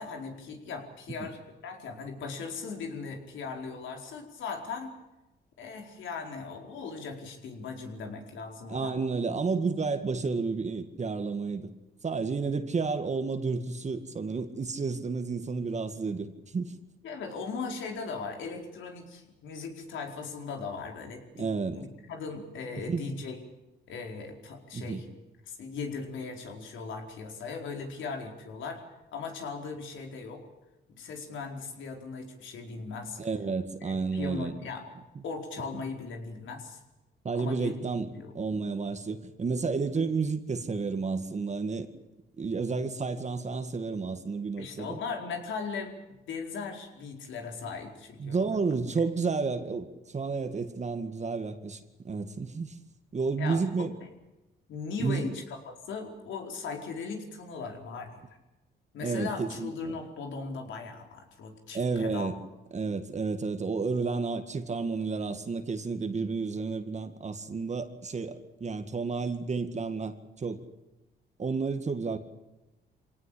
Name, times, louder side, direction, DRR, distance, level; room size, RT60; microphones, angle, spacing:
voice 1, 0.0-5.0 5.6-8.9 17.0-21.4 21.7-23.4 23.9-25.0 25.5-28.8 29.1-30.4 30.9-33.2 33.8-34.8 35.2-36.8 37.3-37.8 38.1-38.3 44.6-45.9 46.3-48.5 53.4-54.1 54.7-58.2 58.9-62.3, left 4 dB, 75° left, 3 dB, 4.7 m, -38 dB
voice 2, 8.7-11.7 12.0-16.7 21.4-21.9 22.9-23.0 24.7-25.0 33.2-34.5 37.2-41.9 42.4-45.0 48.2-52.8 53.1-53.9 55.0-55.3 59.0-60.0 61.7-62.4 62.7-70.6 71.4-72.2, right 4 dB, 35° right, 8 dB, 2.0 m, -31 dB
24.0 x 18.0 x 8.6 m, 1.0 s
cardioid pair, 90°, 20 cm